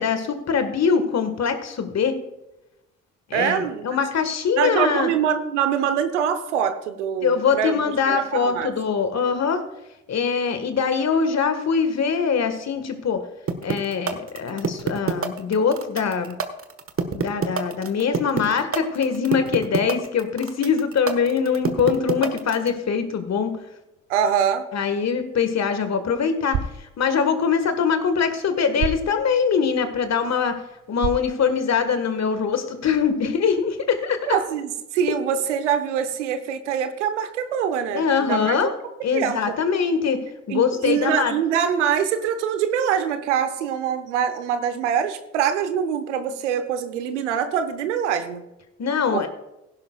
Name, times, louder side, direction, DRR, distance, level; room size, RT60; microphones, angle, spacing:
voice 1, 0.0-2.2 3.3-5.1 7.2-9.6 10.1-13.2 13.6-16.4 17.1-23.5 24.7-30.6 30.9-34.4 37.9-38.7 39.0-40.2 40.5-41.3 48.8-49.3, left 6 dB, 50° left, 9 dB, 1.7 m, -23 dB
voice 2, 3.3-3.9 4.6-8.7 24.1-24.6 34.2-38.7 39.1-39.5 40.5-48.4 49.1-49.2, right 8 dB, 90° right, 10 dB, 0.9 m, -24 dB
sound 1, 13.5-22.7, right 6 dB, 40° right, 1.4 m, -25 dB
sound 2, 25.3-32.2, right 7 dB, 60° right, 1.1 m, -35 dB
16.0 x 10.5 x 2.4 m, 0.94 s
hypercardioid pair, 45°, 35 cm